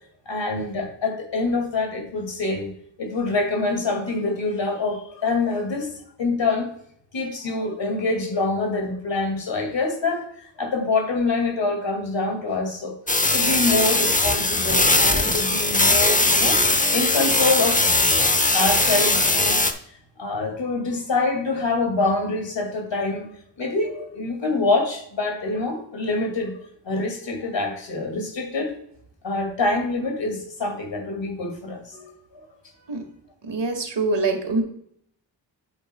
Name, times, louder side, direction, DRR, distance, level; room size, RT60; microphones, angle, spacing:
voice 1, 0.3-2.7 3.0-5.9 6.2-6.7 7.1-13.0 13.3-16.6 16.9-17.9 18.5-19.8 20.2-23.3 23.6-26.5 26.8-28.7 29.2-32.4, left 3 dB, 75° left, 5 dB, 2.3 m, -25 dB
sound 1, 13.1-19.7, left 2 dB, 15° left, 0.9 m, -20 dB
voice 2, 33.4-34.6, right 3 dB, 70° right, 4 dB, 1.9 m, -24 dB
8.8 x 7.7 x 2.3 m, 0.67 s
cardioid pair, 55°, 45 cm